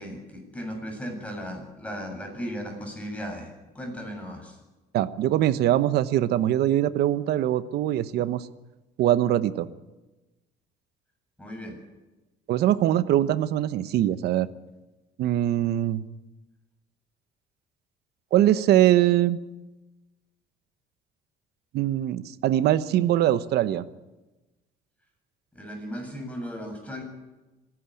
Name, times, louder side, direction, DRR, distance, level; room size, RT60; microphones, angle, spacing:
voice 1, 0.0-4.6 11.4-11.8 25.5-27.0, equal, 10° left, 2 dB, 7.6 m, -36 dB
voice 2, 4.9-8.5 9.0-9.7 12.5-14.5 15.2-16.0 18.3-19.4 21.7-23.8, right 12 dB, 75° right, 14 dB, 1.0 m, -22 dB
26.5 x 11.0 x 9.9 m, 1.1 s
cardioid pair, 110°, 17 cm